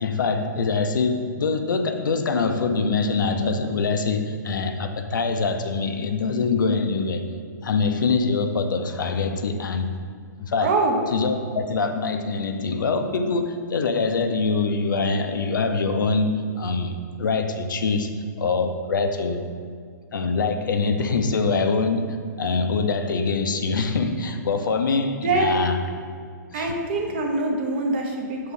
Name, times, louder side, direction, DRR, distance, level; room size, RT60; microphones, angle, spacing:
voice 1, 0.0-7.2 7.6-9.9 10.4-10.7 11.1-18.1 18.4-19.4 20.1-25.8 26.5-26.7, left 4 dB, 85° left, 7 dB, 0.6 m, -24 dB
voice 2, 10.6-11.0 25.2-25.6 26.5-28.5, right 3 dB, 35° right, 1 dB, 0.8 m, -24 dB
6.3 x 3.1 x 5.4 m, 2.1 s
hypercardioid pair, 170°, 10 cm